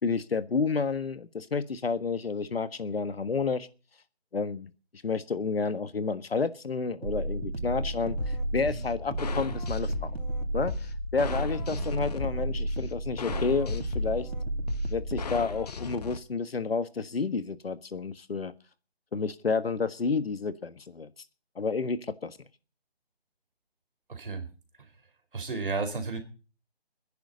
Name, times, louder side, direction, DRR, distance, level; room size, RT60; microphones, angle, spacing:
voice 1, 0.0-3.7 4.3-4.7 5.0-10.1 10.5-10.7 11.1-14.3 14.9-18.5 19.1-21.1 21.5-22.4, left 4 dB, 70° left, 13 dB, 1.5 m, -30 dB
sound 1, 7.0-15.4, right 1 dB, 75° right, 3.0 m, -33 dB
sound 2, 8.2-16.2, left 5 dB, 40° left, 1.3 m, -37 dB
voice 2, 24.1-24.5 24.8-24.9 25.3-26.2, right 4 dB, 55° right, 7 dB, 4.3 m, -33 dB
24.5 x 10.5 x 4.0 m, 0.37 s
figure-of-eight pair, 165°, 31 cm